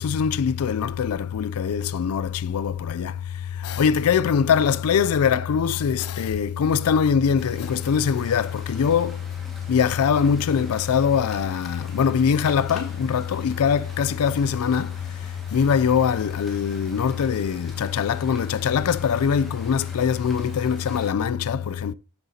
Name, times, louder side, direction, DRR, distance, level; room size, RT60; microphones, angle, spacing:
voice 1, 0.0-3.1 3.6-9.2 9.7-14.9 15.5-21.9, left 7 dB, 90° left, 0.4 m, -22 dB
sound 1, 7.4-21.1, equal, ahead, 1.8 m, -45 dB
12.0 x 6.6 x 2.8 m
head